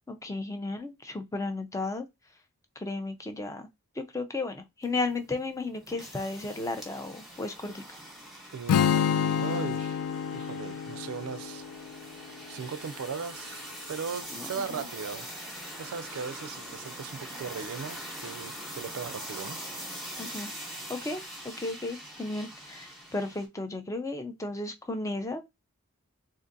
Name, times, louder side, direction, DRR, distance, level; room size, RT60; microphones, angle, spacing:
voice 1, 0.1-2.1 2.8-3.7 4.0-8.0 14.3-14.9 20.2-20.5 20.9-25.6, left 2 dB, 15° left, 0.4 m, -34 dB
sound 1, 4.8-23.5, equal, ahead, 0.9 m, -43 dB
voice 2, 8.5-10.0 10.3-11.6 12.5-13.6 13.9-15.3 15.8-19.6, right 6 dB, 70° right, 0.4 m, -38 dB
Strum, 8.7-12.8, left 8 dB, 85° left, 0.3 m, -29 dB
3.8 x 2.5 x 2.6 m
head